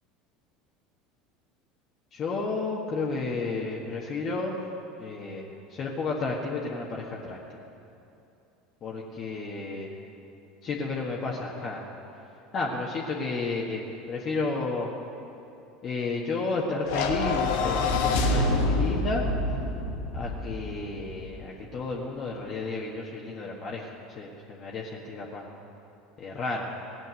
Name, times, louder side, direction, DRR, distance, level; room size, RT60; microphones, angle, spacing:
voice 1, 2.1-4.5 5.0-7.4 8.8-9.9 10.6-11.8 12.5-14.9 15.8-19.2 20.1-25.5 26.2-26.7, left 3 dB, 40° left, -3 dB, 1.7 m, -32 dB
sound 1, 16.9-21.3, left 2 dB, 65° left, 1.6 m, -27 dB
17.5 x 7.7 x 9.1 m, 2.8 s
figure-of-eight pair, 70°, 0 cm